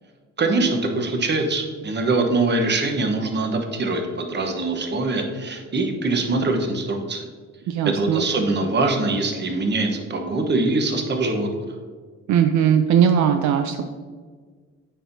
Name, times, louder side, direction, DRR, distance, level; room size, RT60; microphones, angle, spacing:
voice 1, 0.4-7.3 7.8-11.5, right 3 dB, 35° right, 4 dB, 1.0 m, -23 dB
voice 2, 7.7-8.2 12.3-13.9, right 8 dB, 70° right, 7 dB, 0.5 m, -19 dB
9.0 x 4.5 x 2.7 m, 1.5 s
cardioid pair, 90°, 30 cm